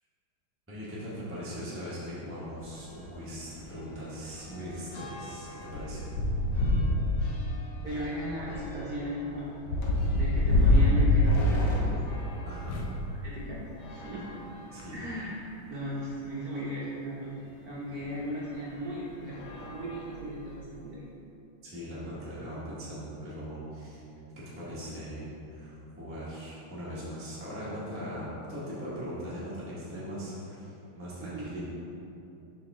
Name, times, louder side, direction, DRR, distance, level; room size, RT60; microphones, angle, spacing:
voice 1, 0.7-6.1 12.4-12.8 14.7-15.0 21.6-24.0 24.3-31.6, equal, 10° right, -9 dB, 1.0 m, -40 dB
sound 1, 2.6-2.8 3.1-3.2 3.6-13.0 13.8-15.1 15.8-15.9 16.1-16.2 17.9-18.1 18.7-18.9 19.3-20.6, left 1 dB, 70° left, 1.5 m, -28 dB
voice 2, 7.7-9.5 10.1-11.9 13.2-13.6 13.9-14.2 14.9-15.4 15.7-17.4 17.6-21.0 31.2-31.5, equal, 55° right, -7 dB, 1.1 m, -36 dB
6.6 x 5.4 x 3.6 m, 2.8 s
omnidirectional pair, 2.4 m